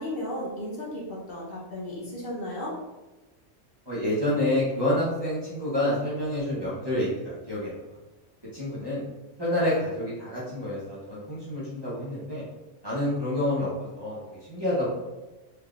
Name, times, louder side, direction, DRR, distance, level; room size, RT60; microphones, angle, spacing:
voice 1, 0.0-2.7, left 1 dB, 55° left, -4 dB, 0.8 m, -34 dB
voice 2, 3.9-7.7 8.5-9.0 9.4-12.4 12.8-13.7 13.9-14.2 14.5-14.9, left 1 dB, 25° right, -9 dB, 0.8 m, -28 dB
3.5 x 2.7 x 2.3 m, 1.1 s
omnidirectional pair, 1.3 m